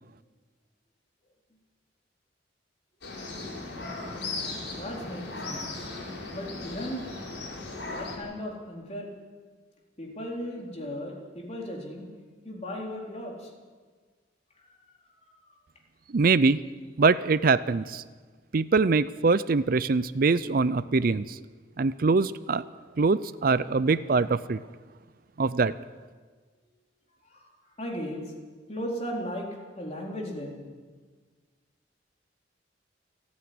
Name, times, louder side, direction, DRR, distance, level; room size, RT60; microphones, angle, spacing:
sound 1, 3.0-8.2, left 3 dB, 85° left, 5.6 m, -37 dB
voice 1, 4.8-5.9 6.3-7.1 7.9-9.1 10.0-12.1 12.4-13.5 27.3-27.4 27.8-28.2 28.7-29.5 29.8-30.6, equal, 35° left, -1 dB, 4.0 m, -36 dB
voice 2, 16.1-16.6 17.0-18.0 18.5-21.4 21.8-22.6 23.0-24.6 25.4-25.7, right 4 dB, 50° right, 16 dB, 0.5 m, -23 dB
28.5 x 9.6 x 9.5 m, 1.5 s
head